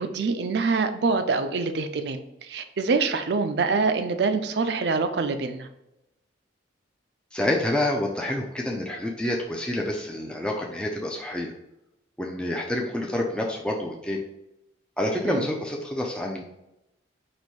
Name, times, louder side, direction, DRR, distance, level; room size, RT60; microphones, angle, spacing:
voice 1, 0.0-5.7 15.2-15.5, right 4 dB, 55° right, 8 dB, 0.4 m, -25 dB
voice 2, 7.3-11.5 12.2-14.2 15.0-16.4, left 1 dB, 5° left, -1 dB, 0.4 m, -28 dB
4.2 x 2.6 x 4.5 m, 0.89 s
head